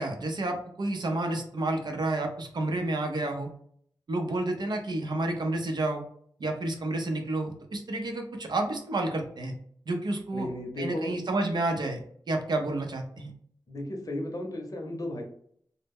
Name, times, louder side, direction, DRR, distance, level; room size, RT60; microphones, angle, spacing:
voice 1, 0.0-3.5 4.1-6.0 6.4-9.5 9.9-10.5 10.8-12.0 12.3-13.3, right 2 dB, 65° right, 3 dB, 0.5 m, -30 dB
voice 2, 10.3-11.1 13.7-15.2, left 1 dB, 50° left, 1 dB, 0.7 m, -34 dB
2.0 x 2.0 x 3.4 m, 0.62 s
wide cardioid pair, 105°, 8 cm